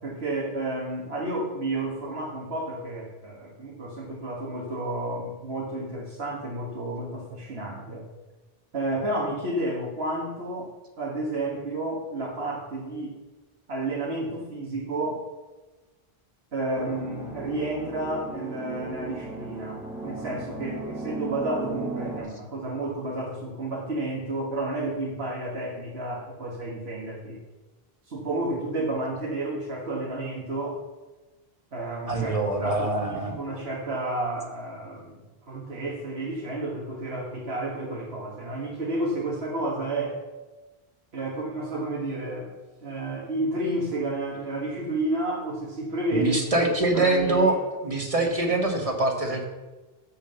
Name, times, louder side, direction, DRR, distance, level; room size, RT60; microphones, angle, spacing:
voice 1, 0.0-8.1 8.7-10.7 11.0-13.1 13.7-15.3 16.5-27.4 28.0-30.8 31.7-32.3 32.6-35.2 35.5-40.2 41.1-42.5 42.8-46.3 46.8-47.5, right 2 dB, 80° right, -4 dB, 1.8 m, -31 dB
sound 1, 16.8-22.2, right 3 dB, ahead, 1.3 m, -36 dB
voice 2, 32.1-33.4 46.1-47.6 47.8-49.5, right 2 dB, 35° right, 3 dB, 1.3 m, -24 dB
7.4 x 6.8 x 6.7 m, 1.2 s
omnidirectional pair, 1.0 m